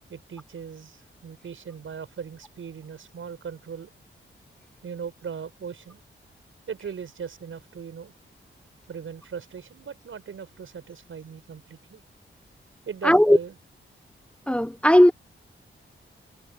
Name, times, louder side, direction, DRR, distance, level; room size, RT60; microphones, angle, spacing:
voice 1, 0.1-3.9 4.8-6.0 6.7-8.1 8.9-12.0 12.9-13.5, right 7 dB, 75° right, 7.2 m, -38 dB
voice 2, 13.0-13.4 14.5-15.1, equal, 5° left, 1.0 m, -16 dB
wide cardioid pair, 115°, 21 cm